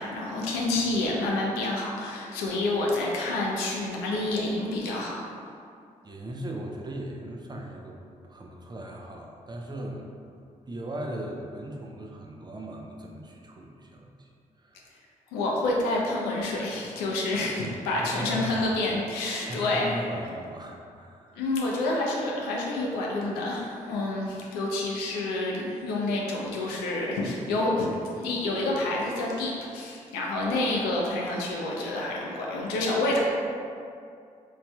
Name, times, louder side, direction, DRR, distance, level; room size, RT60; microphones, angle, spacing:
voice 1, 0.0-5.1 15.3-20.1 21.4-33.2, left 2 dB, 90° left, -2 dB, 0.4 m, -28 dB
voice 2, 6.0-14.3 14.6-14.9 18.0-18.7 19.4-21.4, right 1 dB, 25° right, 0 dB, 0.5 m, -38 dB
3.0 x 2.7 x 2.2 m, 2.3 s
supercardioid pair, 45°, 16 cm